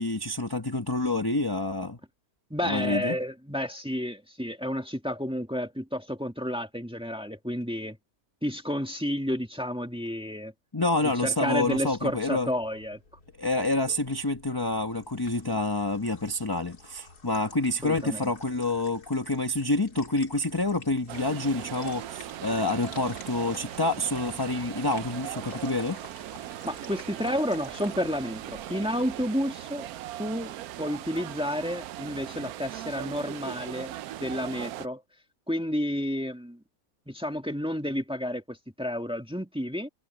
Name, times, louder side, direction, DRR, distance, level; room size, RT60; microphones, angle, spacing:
voice 1, 0.0-2.0 2.6-3.2 10.7-12.5 13.4-26.0, left 2 dB, 15° left, 1.2 m, -28 dB
voice 2, 2.5-8.0 8.4-10.5 11.2-13.0 17.8-18.3 26.6-29.9 30.2-33.9 34.2-35.0 35.5-36.6 37.1-39.9, equal, 5° right, 1.7 m, -31 dB
sound 1, 11.7-29.3, left 3 dB, 85° left, 3.4 m, -50 dB
sound 2, 21.1-34.9, right 13 dB, 75° right, 1.1 m, -39 dB
omnidirectional pair, 1.6 m